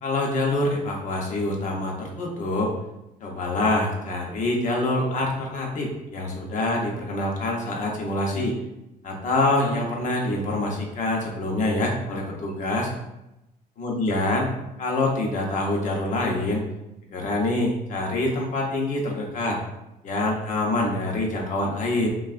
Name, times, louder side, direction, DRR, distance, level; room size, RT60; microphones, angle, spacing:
voice 1, 0.0-2.7 3.2-8.5 9.0-12.9 13.8-14.5 14.8-16.6 17.1-19.6 20.0-22.1, left 2 dB, 50° left, 0 dB, 0.9 m, -25 dB
5.9 x 2.4 x 2.5 m, 0.91 s
cardioid pair, 160°, 16 cm